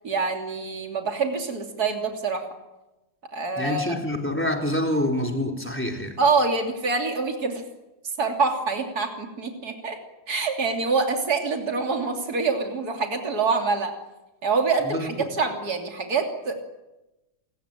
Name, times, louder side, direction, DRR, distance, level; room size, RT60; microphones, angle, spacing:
voice 1, 0.0-2.4 3.3-4.0 6.2-7.6 8.2-10.0 10.3-13.9 14.4-16.6, right 4 dB, 60° right, 3.6 m, -25 dB
voice 2, 3.6-6.2 14.8-15.3, left 1 dB, 5° left, 3.9 m, -27 dB
29.0 x 22.0 x 9.1 m
omnidirectional pair, 1.9 m